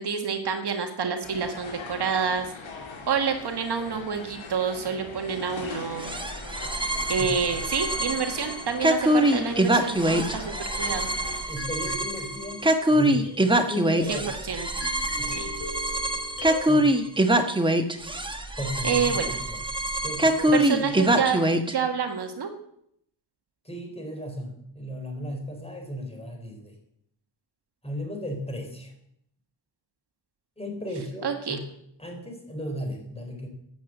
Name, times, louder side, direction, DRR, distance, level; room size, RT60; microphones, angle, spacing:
voice 1, 0.0-2.5 3.1-6.1 7.1-11.1 14.1-14.9 15.3-15.5 18.8-19.4 20.5-21.4 21.7-22.5 31.2-31.6, right 6 dB, 60° right, 5 dB, 1.7 m, -28 dB
sound 1, 1.2-11.4, left 4 dB, 90° left, 3.3 m, -41 dB
sound 2, 6.0-21.7, right 1 dB, 10° right, 1.2 m, -24 dB
voice 2, 11.5-13.3 13.6-14.3 15.2-15.4 16.7-17.0 18.6-19.2 19.5-21.2 23.6-26.7 27.8-28.9 30.6-31.6 32.0-33.5, equal, 15° left, 2 dB, 4.3 m, -35 dB
sound 3, 11.6-16.8, left 3 dB, 75° left, 4.6 m, -42 dB
13.0 x 9.2 x 7.9 m, 0.73 s
wide cardioid pair, 145°, 45 cm